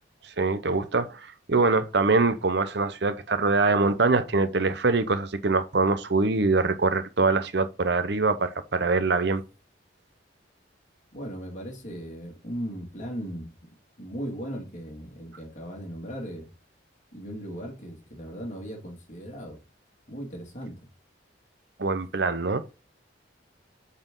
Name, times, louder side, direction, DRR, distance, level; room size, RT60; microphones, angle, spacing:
voice 1, 0.2-9.4 21.8-22.7, right 3 dB, 60° right, 0.7 m, -24 dB
voice 2, 11.1-16.5 17.1-19.6 20.1-20.7, equal, 40° left, 2.3 m, -37 dB
8.9 x 4.3 x 3.8 m
head